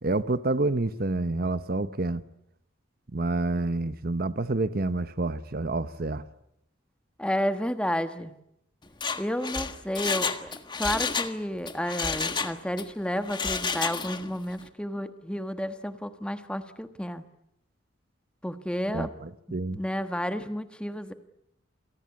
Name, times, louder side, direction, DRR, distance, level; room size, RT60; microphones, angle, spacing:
voice 1, 0.0-2.2 3.1-6.2 18.9-19.8, right 2 dB, 50° right, 13 dB, 0.9 m, -28 dB
voice 2, 7.2-8.3 9.2-10.5 10.8-17.2 18.4-19.1 19.5-21.1, equal, 5° left, 9 dB, 1.3 m, -31 dB
Mechanisms, 8.9-11.4 11.7-12.9 13.2-14.3 14.6-14.7, left 5 dB, 25° left, 1.5 m, -30 dB
28.0 x 18.5 x 9.6 m, 0.78 s
head